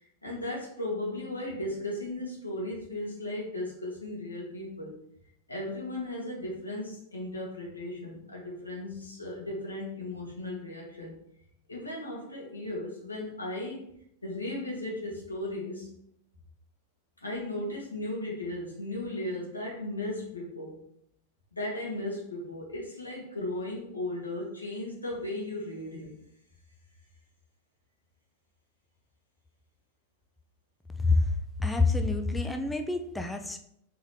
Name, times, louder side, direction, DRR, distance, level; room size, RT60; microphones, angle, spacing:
voice 1, 0.2-4.9 5.5-11.2 11.7-13.8 14.2-15.9 17.2-20.8 21.5-26.1, left 1 dB, 80° left, -3 dB, 1.5 m, -36 dB
voice 2, 31.0-31.3 31.6-33.6, left 3 dB, 5° left, 5 dB, 0.4 m, -27 dB
4.0 x 3.8 x 3.3 m, 0.72 s
figure-of-eight pair, 90°, 0 cm